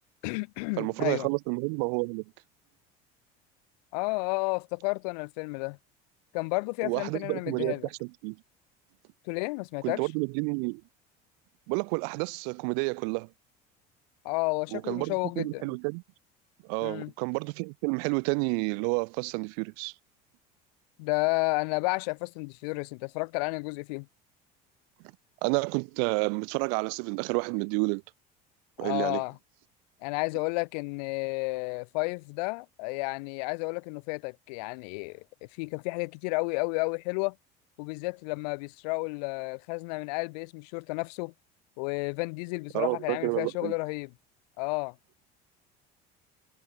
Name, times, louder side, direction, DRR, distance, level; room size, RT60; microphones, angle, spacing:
voice 1, 0.2-1.3 3.9-5.8 6.3-7.9 9.3-10.1 14.2-15.7 16.8-17.1 21.0-24.1 28.8-29.4 30.0-35.2 35.6-37.4 37.8-41.3 41.8-44.1 44.6-45.0, left 29 dB, 85° left, 1.8 m, -31 dB
voice 2, 0.8-2.2 6.8-8.4 9.8-10.8 11.7-13.3 14.7-16.0 16.7-19.9 25.4-28.0 28.8-29.2 42.7-43.7, right 40 dB or more, 80° right, 1.3 m, -30 dB
supercardioid pair, 115°, 20 cm